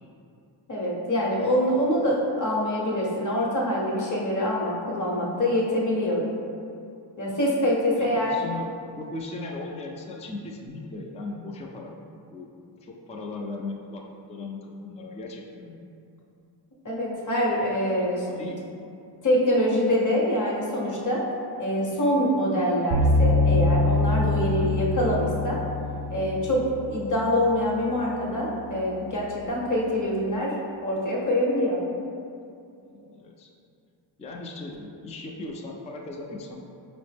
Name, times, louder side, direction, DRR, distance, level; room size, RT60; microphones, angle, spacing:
voice 1, 0.7-6.2 7.2-8.3 16.8-18.4 19.2-21.3 21.6-25.6 26.1-30.6 30.8-31.8, equal, 40° left, -3 dB, 0.9 m, -25 dB
voice 2, 8.0-12.0 12.3-12.5 12.8-15.8 17.8-18.6 24.5-24.8 32.8-33.5 34.2-36.7, left 2 dB, 15° left, 0 dB, 0.3 m, -38 dB
sound 1, 22.9-28.0, left 2 dB, 45° right, 0.6 m, -24 dB
4.8 x 2.0 x 3.3 m, 2.6 s
cardioid pair, 60°, 48 cm